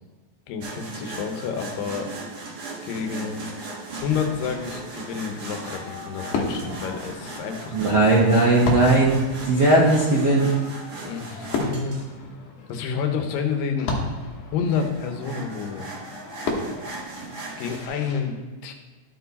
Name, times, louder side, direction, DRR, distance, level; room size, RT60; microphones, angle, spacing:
voice 1, 0.5-2.1 2.8-3.4 4.0-7.8 11.0-12.0 12.7-13.9 14.5-15.9 17.6-18.4 18.6-18.7, left 6 dB, 90° left, 5 dB, 2.6 m, -29 dB
sound 1, 0.6-12.0 14.6-17.9, right 3 dB, 60° right, 1.0 m, -38 dB
Fireworks, 4.0-18.2, left 3 dB, 70° left, 2.5 m, -34 dB
voice 2, 7.7-9.2 9.4-10.5, right 2 dB, 85° right, -5 dB, 0.9 m, -18 dB
12.5 x 4.6 x 4.1 m, 1.3 s
omnidirectional pair, 3.9 m